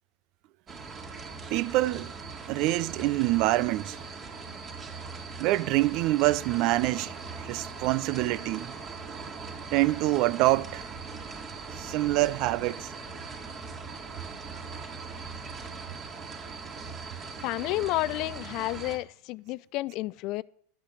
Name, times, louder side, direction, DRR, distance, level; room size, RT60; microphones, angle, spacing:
sound 1, 0.7-19.0, right 4 dB, 30° right, 2.8 m, -40 dB
voice 1, 1.5-2.1 2.5-4.0 5.4-7.1 7.4-8.7 9.7-10.9 11.8-12.9, right 18 dB, 50° right, 0.5 m, -26 dB
voice 2, 17.4-20.4, left 19 dB, 50° left, 0.4 m, -31 dB
11.5 x 8.7 x 7.8 m
figure-of-eight pair, 85°, 0 cm